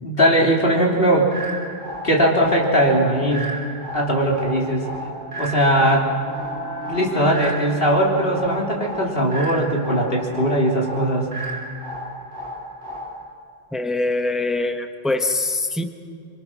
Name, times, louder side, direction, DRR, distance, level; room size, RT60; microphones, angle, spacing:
voice 1, 0.0-1.3 2.0-3.5 3.9-4.9 5.4-6.1 6.9-11.3, right 1 dB, 65° left, -2 dB, 3.7 m, -19 dB
sound 1, 1.3-13.3, right 1 dB, 65° right, 3.6 m, -34 dB
sound 2, 4.4-8.7, equal, 85° left, 2.1 m, -37 dB
voice 2, 13.7-15.8, left 2 dB, ahead, 6 dB, 1.1 m, -23 dB
27.0 x 25.5 x 6.2 m, 2.4 s
omnidirectional pair, 1.1 m